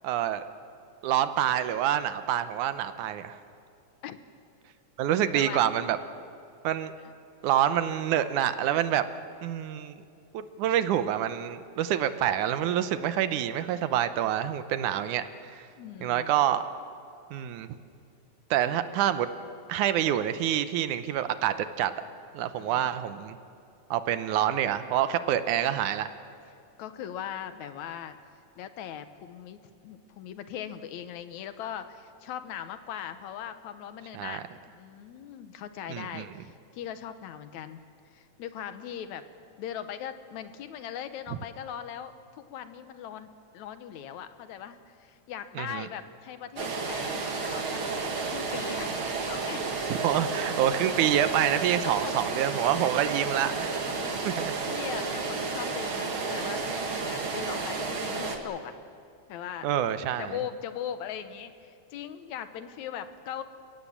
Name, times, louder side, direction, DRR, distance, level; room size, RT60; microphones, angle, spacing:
voice 1, 0.0-0.4 1.0-3.4 5.0-6.0 6.6-6.9 7.4-9.1 9.4-10.0 10.3-15.6 16.0-16.6 17.3-17.7 18.5-19.3 19.7-21.9 22.3-23.4 23.9-26.1 34.1-34.4 35.9-36.3 45.6-45.9 49.9-53.7 54.2-54.5 59.6-60.4, right 11 dB, 85° right, 11 dB, 2.3 m, -27 dB
voice 2, 15.8-16.3 22.6-22.9 26.8-28.2 28.6-37.9 38.1-39.3 39.6-43.3 43.5-47.8 48.3-49.0 49.3-49.7 51.8-52.2 53.9-54.4 54.7-58.7 59.3-59.7 60.2-63.4, left 9 dB, 75° left, 10 dB, 2.2 m, -40 dB
sound 1, 46.6-58.4, right 4 dB, 45° right, 2.4 m, -32 dB
29.5 x 17.0 x 7.3 m, 2.4 s
omnidirectional pair, 3.4 m